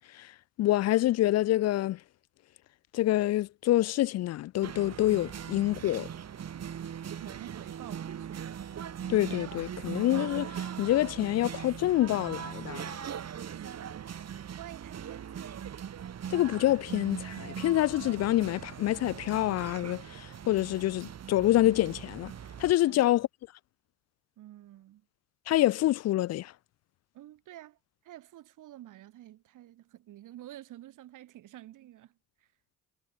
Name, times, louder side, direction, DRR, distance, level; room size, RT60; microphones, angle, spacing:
voice 1, 0.6-2.0 2.9-6.1 9.1-12.9 16.3-22.3 22.6-23.3 25.5-26.5, left 15 dB, 50° left, 0.5 m, -26 dB
sound 1, 4.6-22.7, right 8 dB, 50° right, 4.2 m, -40 dB
voice 2, 7.2-8.5 13.5-15.8 22.9-23.1 24.4-25.1 27.1-27.8 28.0-32.5, right 13 dB, 70° right, 4.2 m, -49 dB
supercardioid pair, 65°, 32 cm